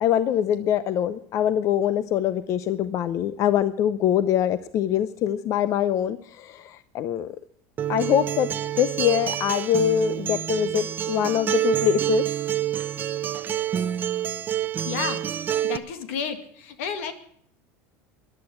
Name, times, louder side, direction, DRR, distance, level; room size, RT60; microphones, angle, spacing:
voice 1, 0.0-7.4 7.9-8.5 8.7-12.3, left 10 dB, 45° left, 15 dB, 0.7 m, -24 dB
Acoustic guitar, 7.8-15.8, right 10 dB, 25° right, 0.7 m, -27 dB
voice 2, 14.8-15.2 15.6-17.1, left 7 dB, 85° left, 9 dB, 2.2 m, -31 dB
14.5 x 11.0 x 7.2 m, 0.64 s
supercardioid pair, 130°, 7 cm